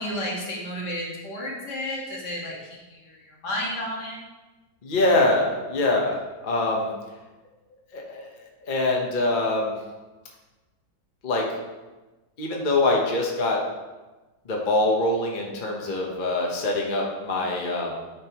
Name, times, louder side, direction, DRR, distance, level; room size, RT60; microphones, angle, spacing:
voice 1, 0.0-2.5 2.9-4.2, left 1 dB, 70° left, -4 dB, 2.3 m, -32 dB
voice 2, 4.8-6.9 7.9-8.3 8.7-9.7 11.2-11.5 12.4-13.6 14.4-17.9, left 2 dB, 35° left, -1 dB, 1.0 m, -24 dB
9.8 x 5.3 x 3.0 m, 1.2 s
omnidirectional pair, 1.9 m